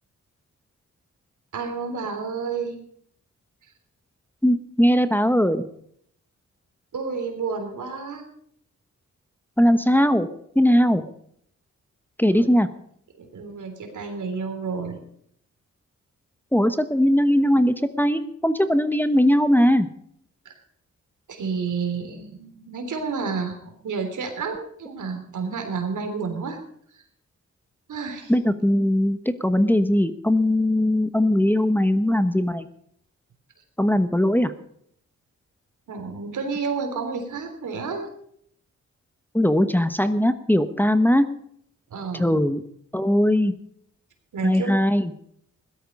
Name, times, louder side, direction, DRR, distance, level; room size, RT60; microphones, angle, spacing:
voice 1, 1.5-2.8 6.9-8.2 12.4-12.5 13.2-15.0 20.5-20.6 21.3-26.6 26.9-27.0 27.9-28.3 35.9-38.1 41.9-42.4 44.3-44.7, right 5 dB, 80° right, 5 dB, 3.5 m, -30 dB
voice 2, 4.4-5.6 9.6-10.3 10.5-11.0 12.2-12.7 16.5-19.9 28.3-32.7 33.8-34.5 39.3-41.3 42.2-42.6 42.9-43.5 44.4-45.1, equal, 5° left, 9 dB, 1.1 m, -20 dB
16.5 x 13.0 x 5.4 m, 0.68 s
cardioid pair, 65°, 30 cm